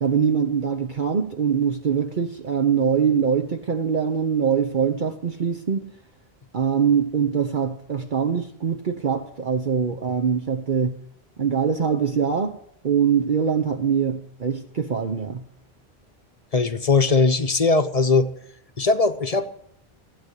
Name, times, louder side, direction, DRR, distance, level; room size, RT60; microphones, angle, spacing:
voice 1, 0.0-5.9 6.5-11.0 11.4-15.5, right 7 dB, 50° right, 0.9 m, -23 dB
voice 2, 16.5-18.3 18.8-19.5, left 3 dB, 40° left, 0.8 m, -19 dB
16.0 x 8.3 x 8.2 m
omnidirectional pair, 1.1 m